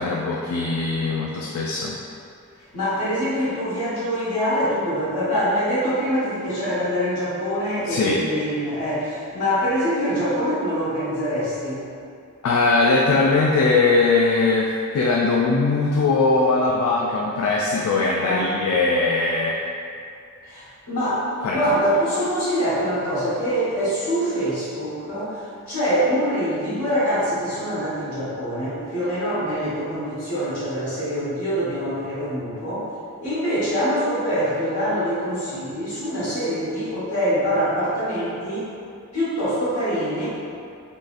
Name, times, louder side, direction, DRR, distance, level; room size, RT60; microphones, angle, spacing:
voice 1, 0.0-2.0 7.9-8.2 12.4-19.6 21.4-21.6, left 3 dB, 70° left, -3 dB, 0.3 m, -20 dB
voice 2, 2.7-11.8 18.2-18.5 20.4-32.9 33.2-38.7 39.1-40.3, equal, 90° left, -11 dB, 1.4 m, -24 dB
3.7 x 2.4 x 2.4 m, 2.4 s
head